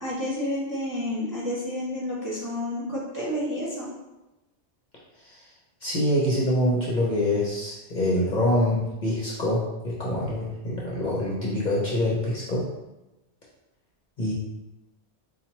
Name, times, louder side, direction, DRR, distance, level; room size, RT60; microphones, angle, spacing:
voice 1, 0.0-3.9, left 1 dB, 20° right, -8 dB, 0.7 m, -30 dB
voice 2, 5.8-12.7 14.2-14.3, left 1 dB, 45° left, -5 dB, 0.8 m, -25 dB
4.2 x 2.4 x 2.9 m, 1.0 s
omnidirectional pair, 1.2 m